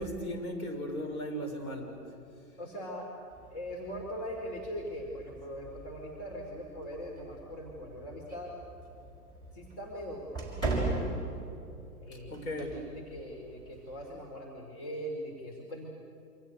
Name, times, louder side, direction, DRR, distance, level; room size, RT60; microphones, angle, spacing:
voice 1, 0.0-1.9 12.3-12.7, equal, 60° left, 1 dB, 6.7 m, -36 dB
voice 2, 2.6-3.1 3.5-8.6 9.5-10.9 12.0-15.9, equal, 40° left, 0 dB, 4.8 m, -41 dB
sound 1, 3.3-14.2, right 2 dB, 10° left, 5.9 m, -40 dB
28.5 x 27.0 x 6.9 m, 2.6 s
figure-of-eight pair, 115°, 48 cm